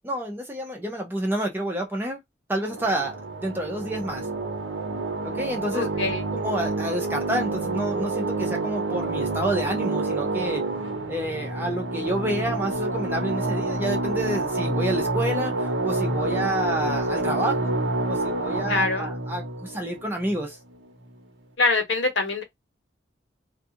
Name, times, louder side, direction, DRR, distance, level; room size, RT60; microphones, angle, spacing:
voice 1, 0.0-2.2 2.5-3.2 3.4-4.3 5.2-10.7 11.1-17.7 18.1-20.6, right 1 dB, 10° right, 0.7 m, -29 dB
sound 1, 2.6-20.8, right 2 dB, 80° right, 1.0 m, -28 dB
voice 2, 5.7-6.2 18.7-19.1 21.6-22.4, left 3 dB, 80° left, 1.1 m, -24 dB
2.4 x 2.3 x 2.7 m
head